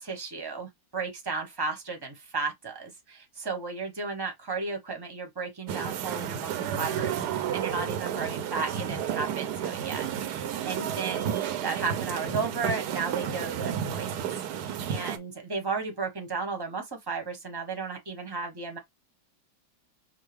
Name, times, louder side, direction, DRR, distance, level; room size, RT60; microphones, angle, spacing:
voice 1, 0.0-14.2 14.5-18.8, right 4 dB, 20° right, 0.8 m, -34 dB
sound 1, 5.7-15.2, right 9 dB, 70° right, 1.1 m, -31 dB
5.4 x 2.2 x 3.3 m
omnidirectional pair, 2.0 m